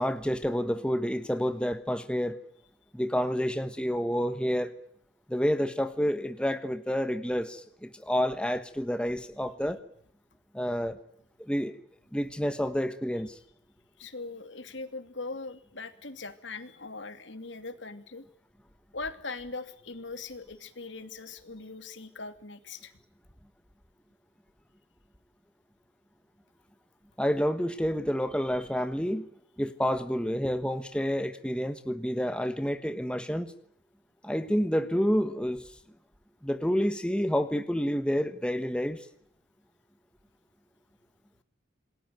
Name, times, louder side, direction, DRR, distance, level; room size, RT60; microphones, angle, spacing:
voice 1, 0.0-2.4 2.9-4.7 5.3-9.8 10.5-11.0 11.4-11.7 12.1-13.4 27.2-29.3 29.6-33.5 34.2-35.6 36.4-39.1, equal, 5° left, 9 dB, 1.3 m, -29 dB
voice 2, 14.0-18.2 18.9-22.9, left 3 dB, 70° left, 10 dB, 2.7 m, -40 dB
28.0 x 20.0 x 9.2 m, 0.71 s
head